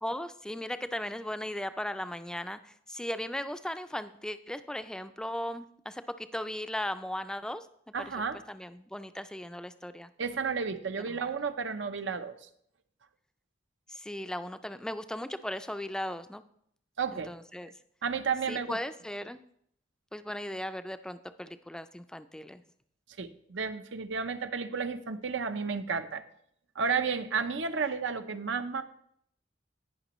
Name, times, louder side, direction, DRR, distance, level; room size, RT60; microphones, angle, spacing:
voice 1, 0.0-7.7 8.1-8.2 8.5-10.1 11.0-11.3 13.9-16.4 17.1-17.7 18.5-19.4 20.1-22.6, left 1 dB, 5° left, 11 dB, 0.3 m, -37 dB
voice 2, 7.9-8.4 10.2-12.4 17.0-17.3 18.0-18.7 23.2-26.2 26.8-28.8, right 5 dB, 90° right, 9 dB, 0.7 m, -32 dB
17.5 x 6.0 x 3.0 m, 0.68 s
head